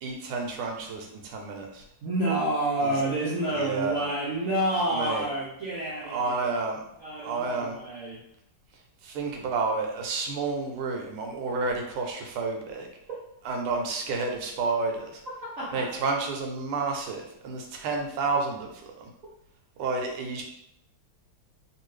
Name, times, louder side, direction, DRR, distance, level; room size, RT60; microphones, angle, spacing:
voice 1, 0.0-1.8 2.8-2.9 3.5-4.0 4.9-5.2 6.1-6.8 7.2-7.8 9.0-12.9 13.4-15.2 15.7-18.7 19.0-19.1 19.8-20.4, right 4 dB, 85° right, 2 dB, 1.6 m, -30 dB
voice 2, 2.0-6.5 7.0-8.2 15.6-15.9, right 1 dB, 70° right, -7 dB, 0.7 m, -29 dB
3.5 x 2.6 x 3.1 m, 0.77 s
omnidirectional pair, 2.3 m